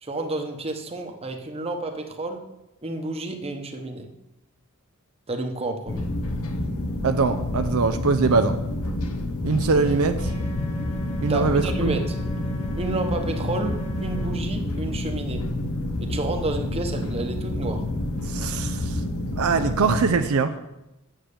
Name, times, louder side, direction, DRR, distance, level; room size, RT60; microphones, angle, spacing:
voice 1, 0.0-2.4 2.8-4.1 5.3-6.1 11.3-12.2 12.8-15.4 16.0-17.9, right 2 dB, 25° right, 4 dB, 1.0 m, -30 dB
sound 1, 5.9-20.1, left 1 dB, 70° left, 1.0 m, -28 dB
voice 2, 7.0-8.6 9.4-10.3 11.2-12.0 18.3-19.0 19.4-20.6, right 4 dB, 70° right, 8 dB, 0.6 m, -22 dB
sound 2, 10.2-14.3, right 1 dB, 35° left, 1.5 m, -42 dB
7.5 x 7.3 x 6.7 m, 0.93 s
head